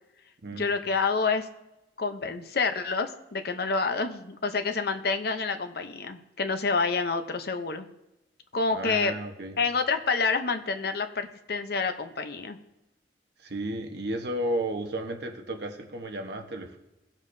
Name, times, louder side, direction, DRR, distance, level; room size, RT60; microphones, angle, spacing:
voice 1, 0.5-1.5 2.0-7.9 8.5-9.1 9.6-12.6, left 4 dB, 55° left, 7 dB, 0.7 m, -28 dB
voice 2, 8.7-9.6 13.4-16.8, right 1 dB, 60° right, 4 dB, 1.1 m, -33 dB
18.0 x 7.3 x 2.7 m, 0.95 s
head